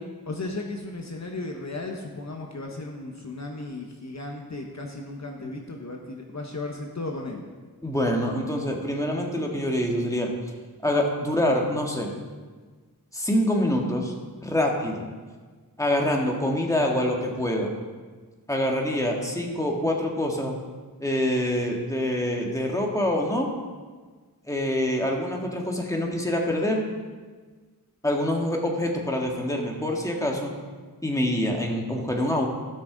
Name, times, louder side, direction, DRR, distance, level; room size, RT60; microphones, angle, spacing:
voice 1, 0.3-7.4, left 2 dB, 50° left, 1 dB, 1.0 m, -35 dB
voice 2, 7.8-10.3 10.8-12.1 13.1-14.1 14.4-15.1 15.8-17.7 18.5-20.6 21.0-23.5 24.5-26.8 28.0-30.5 31.0-32.4, left 1 dB, 10° left, 0 dB, 1.6 m, -25 dB
16.5 x 6.2 x 3.9 m, 1.4 s
wide cardioid pair, 85°, 36 cm